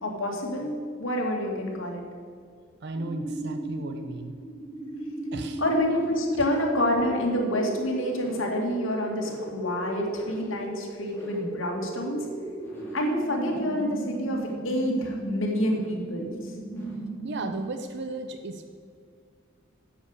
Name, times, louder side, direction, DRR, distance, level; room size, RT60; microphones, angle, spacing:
voice 1, 0.0-2.0 5.6-12.2 12.9-16.5, equal, 85° left, 0 dB, 2.2 m, -28 dB
voice 2, 2.8-4.4 5.3-5.6 6.3-6.4 17.2-18.7, right 2 dB, 60° right, 6 dB, 0.6 m, -35 dB
sound 1, 2.9-17.8, right 1 dB, 10° left, 2.7 m, -36 dB
9.9 x 7.7 x 6.5 m, 2.1 s
head